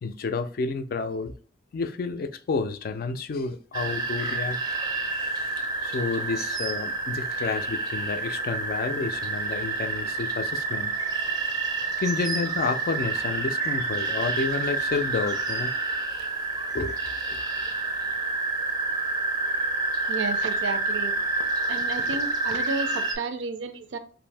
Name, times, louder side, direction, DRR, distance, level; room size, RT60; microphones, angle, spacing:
voice 1, 0.0-1.3 1.7-4.6 5.8-10.9 12.0-15.7 16.2-16.3 16.7-17.0 17.3-17.4, left 4 dB, 55° left, 0.3 m, -30 dB
sound 1, 3.7-23.2, right 3 dB, 20° right, 0.4 m, -28 dB
voice 2, 20.1-21.1 21.7-24.0, right 4 dB, 90° right, 0.4 m, -32 dB
2.6 x 2.6 x 3.2 m
head